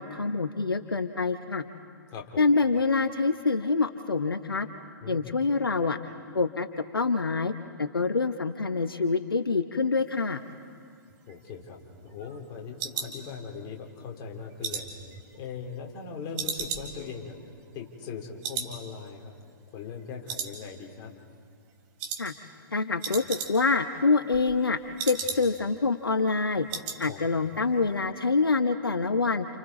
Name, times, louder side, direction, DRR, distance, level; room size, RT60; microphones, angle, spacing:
voice 1, 0.0-1.6 2.4-4.7 5.1-6.0 6.3-7.5 7.8-10.4 22.2-22.3 22.7-24.8 25.1-26.7 27.0-29.5, left 4 dB, 80° left, 9 dB, 0.9 m, -26 dB
voice 2, 2.1-2.4 5.0-5.3 11.3-11.8 12.0-14.9 15.3-17.4 17.7-19.3 19.7-21.1 27.0-27.2, left 6 dB, 30° left, 1 dB, 3.5 m, -40 dB
sound 1, 11.1-13.8 14.2-16.0 16.4-18.2 18.4-18.8 19.0-19.1 19.6-20.0 20.3-21.1 21.3-21.6 22.0-22.3 22.6-22.7 22.9-23.8 24.1-25.7 26.0-26.1 26.4-27.0 27.3-27.6 27.9-28.0, right 6 dB, 35° right, 3.0 m, -36 dB
29.5 x 29.5 x 4.2 m, 2.2 s
figure-of-eight pair, 110°, 12 cm